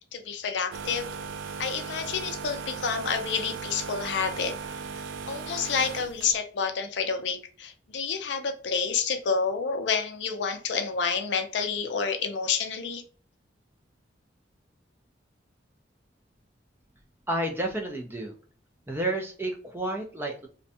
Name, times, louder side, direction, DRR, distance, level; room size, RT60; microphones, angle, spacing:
voice 1, 0.1-1.1 1.6-4.6 5.3-13.0, left 5 dB, 70° left, 7 dB, 0.4 m, -29 dB
sound 1, 0.7-6.4, right 5 dB, 85° right, 0.3 m, -37 dB
voice 2, 17.3-18.3 18.9-20.5, right 1 dB, 10° right, 2 dB, 0.4 m, -30 dB
2.5 x 2.1 x 2.6 m, 0.39 s
head